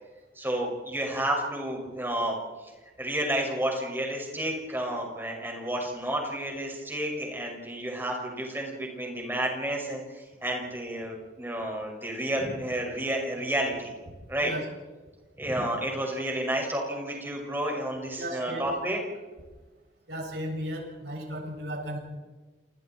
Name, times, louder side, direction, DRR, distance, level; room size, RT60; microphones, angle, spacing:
voice 1, 0.4-2.3 3.0-13.9 14.3-14.5 15.4-19.0, right 1 dB, 10° right, 0 dB, 6.2 m, -31 dB
voice 2, 18.2-18.7 20.1-22.0, equal, 70° right, 0 dB, 7.3 m, -35 dB
29.0 x 29.0 x 4.6 m, 1.3 s
head